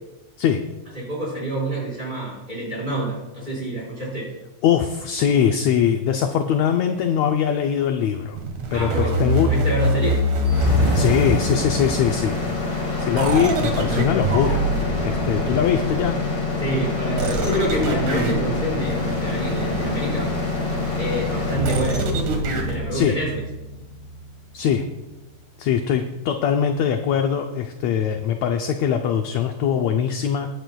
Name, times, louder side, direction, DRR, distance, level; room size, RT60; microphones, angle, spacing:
voice 1, 0.9-4.3 8.7-10.2 16.6-20.3 21.0-22.1 22.6-23.4, right 1 dB, 15° right, -5 dB, 5.0 m, -27 dB
voice 2, 4.6-8.4 8.7-9.5 10.9-12.4 13.0-14.7 15.0-16.2 22.9-23.2 24.5-24.8 25.6-30.5, left 8 dB, 75° left, 5 dB, 1.7 m, -21 dB
sound 1, 8.3-12.1 13.2-16.2 17.2-22.8, right 1 dB, 75° right, 3.0 m, -25 dB
sound 2, 10.4-24.4, left 3 dB, 40° left, 3.4 m, -26 dB
sound 3, 10.6-15.9 16.5-17.1 17.7-19.2 19.5-21.5, right 2 dB, 50° right, 3.3 m, -39 dB
20.5 x 10.5 x 2.3 m, 1.0 s
omnidirectional pair, 3.6 m